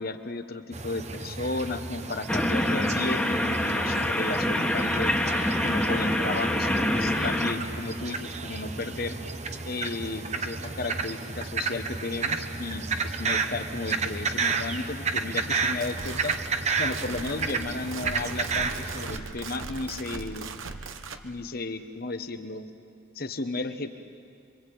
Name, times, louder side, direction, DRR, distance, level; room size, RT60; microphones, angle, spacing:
voice 1, 0.0-5.1 5.6-9.2 9.6-16.3 16.8-20.5 21.2-22.7 23.1-23.9, left 2 dB, 50° left, 8 dB, 1.2 m, -34 dB
sound 1, 0.7-19.2, right 4 dB, 35° right, 1.1 m, -32 dB
sound 2, 2.3-7.5, left 1 dB, 5° left, 1.7 m, -26 dB
sound 3, 15.7-21.2, right 4 dB, 85° right, 1.3 m, -39 dB
26.0 x 24.0 x 8.7 m, 2.4 s
head